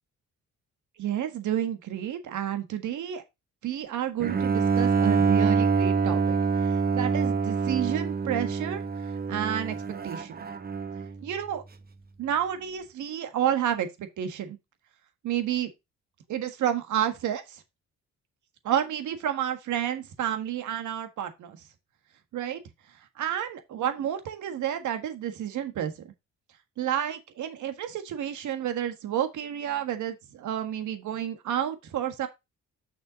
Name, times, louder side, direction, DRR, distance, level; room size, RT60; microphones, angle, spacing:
voice 1, 1.0-3.2 3.6-8.8 9.3-9.8 10.0-10.4 11.2-11.6 12.2-14.6 15.2-15.7 16.3-17.6 18.6-21.6 22.3-22.6 23.2-26.1 26.8-32.3, right 10 dB, 75° right, 1.6 m, -30 dB
Bowed string instrument, 4.2-11.2, right 5 dB, 30° right, 1.0 m, -26 dB
6.8 x 6.2 x 3.8 m
cardioid pair, 90°, 30 cm